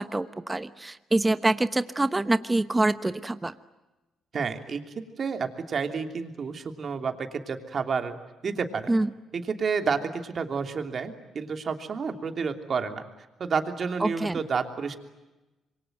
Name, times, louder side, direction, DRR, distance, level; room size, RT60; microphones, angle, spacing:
voice 1, 0.0-3.5 8.9-9.1 14.0-14.4, right 2 dB, 15° right, 12 dB, 1.1 m, -25 dB
voice 2, 4.3-8.2 8.4-8.9 9.3-13.0 13.4-15.0, right 5 dB, 45° right, 6 dB, 3.1 m, -30 dB
27.0 x 23.5 x 9.2 m, 1.1 s
cardioid pair, 90°, 0 cm